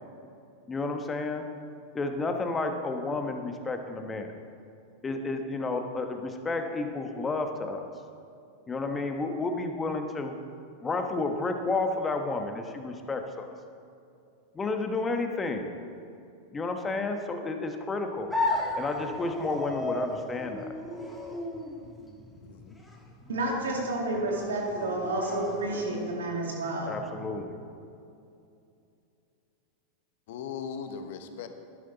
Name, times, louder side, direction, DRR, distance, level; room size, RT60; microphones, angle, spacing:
voice 1, 0.7-1.5 1.9-4.3 5.0-7.9 8.7-10.3 10.8-13.5 14.5-15.7 16.5-18.3 18.8-20.7 26.9-27.5, left 3 dB, 20° left, 5 dB, 1.2 m, -31 dB
sound 1, 18.3-26.3, left 2 dB, 5° left, 1.7 m, -35 dB
voice 2, 22.4-22.8 30.3-31.5, left 7 dB, 65° left, 8 dB, 0.9 m, -38 dB
voice 3, 23.3-27.0, right 2 dB, 85° right, -1 dB, 2.4 m, -30 dB
11.5 x 10.5 x 4.0 m, 2.6 s
hypercardioid pair, 100°, 0 cm